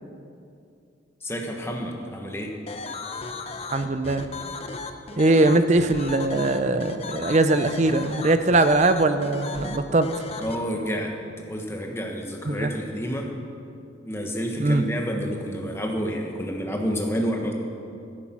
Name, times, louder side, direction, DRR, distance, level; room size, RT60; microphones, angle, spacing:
voice 1, 1.2-2.5 10.4-13.3 14.0-17.5, equal, 15° left, 1 dB, 1.3 m, -29 dB
sound 1, 2.7-10.6, left 3 dB, 30° left, 0.7 m, -35 dB
voice 2, 3.7-4.2 5.2-10.2 12.5-12.7 14.6-14.8, right 2 dB, 35° right, 10 dB, 0.6 m, -21 dB
13.5 x 10.5 x 6.0 m, 2.5 s
head